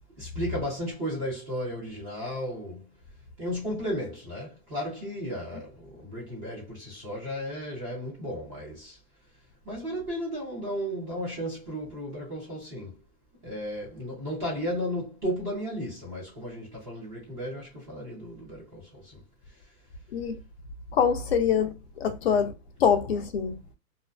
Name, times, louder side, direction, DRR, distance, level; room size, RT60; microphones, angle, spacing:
voice 1, 0.2-2.8 3.4-9.0 9.7-13.0 13.4-19.2, equal, 15° right, 0.4 m, -34 dB
voice 2, 20.9-22.5 22.8-23.6, left 7 dB, 45° left, 0.5 m, -24 dB
2.4 x 2.3 x 2.2 m
hypercardioid pair, 150°, 45 cm